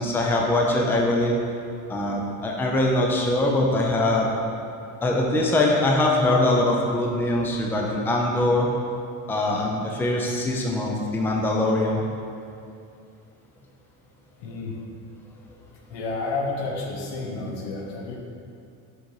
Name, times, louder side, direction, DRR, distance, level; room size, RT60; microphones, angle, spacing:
voice 1, 0.0-1.4 1.9-4.3 5.0-8.7 9.3-12.0, left 1 dB, 5° left, -1 dB, 0.4 m, -22 dB
voice 2, 14.4-14.7 15.9-18.2, left 3 dB, 85° left, 0 dB, 1.2 m, -30 dB
6.3 x 4.0 x 4.7 m, 2.5 s
cardioid pair, 150°, 38 cm